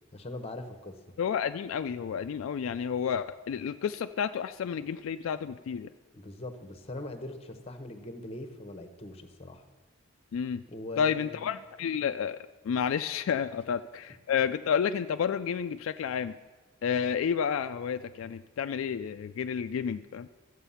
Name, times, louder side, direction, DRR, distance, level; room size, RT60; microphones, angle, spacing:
voice 1, 0.1-0.9 6.1-9.6 10.7-11.4, left 1 dB, 30° left, 7 dB, 0.9 m, -41 dB
voice 2, 1.2-5.9 10.3-10.6 11.0-12.4 12.6-16.3 16.8-20.3, left 7 dB, 75° left, 10 dB, 0.3 m, -30 dB
12.5 x 8.1 x 5.6 m, 1.3 s
head